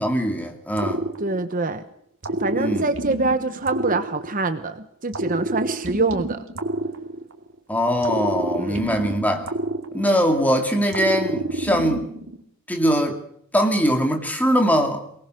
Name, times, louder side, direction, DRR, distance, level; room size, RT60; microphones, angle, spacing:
voice 1, 0.0-1.1 2.5-2.9 7.7-9.5 9.9-12.1 12.7-13.2 13.5-15.1, equal, 5° left, 4 dB, 2.5 m, -21 dB
sound 1, 0.8-1.8 2.2-4.6 5.1-7.5 8.0-10.4 10.9-12.4, right 2 dB, 65° right, 2.5 m, -28 dB
voice 2, 1.2-1.8 2.4-6.4 8.6-8.8, right 3 dB, 40° right, 10 dB, 1.1 m, -25 dB
23.5 x 19.0 x 6.5 m, 0.71 s
head